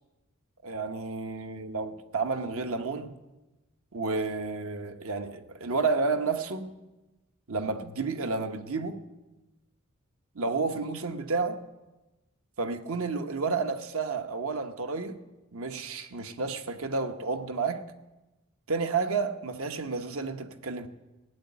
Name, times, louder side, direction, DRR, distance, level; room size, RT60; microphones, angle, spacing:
voice 1, 0.6-3.2 3.9-6.8 7.5-9.0 10.3-11.6 12.6-15.2 15.5-17.9 18.7-20.9, right 4 dB, 75° right, 1.0 m, -31 dB
15.5 x 7.9 x 9.5 m
head